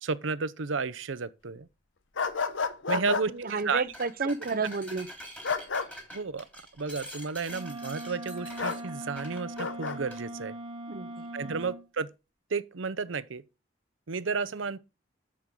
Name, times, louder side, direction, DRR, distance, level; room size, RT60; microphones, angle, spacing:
voice 1, 0.0-1.7 2.9-3.8 4.2-4.3 6.1-6.5 6.8-10.5 11.3-12.1 12.5-13.4 14.1-14.8, right 4 dB, 80° right, 0.7 m, -32 dB
sound 1, 2.2-3.3 5.4-5.9 8.6-8.8 9.6-10.0, left 4 dB, 85° left, 1.0 m, -30 dB
voice 2, 2.9-5.1 10.9-11.6, right 4 dB, 50° right, 0.8 m, -32 dB
sound 2, 3.4-3.6 3.9-10.2, equal, 10° left, 3.4 m, -45 dB
Wind instrument woodwind instrument, 7.5-11.9, right 1 dB, 25° right, 1.2 m, -40 dB
11.0 x 7.2 x 3.8 m
head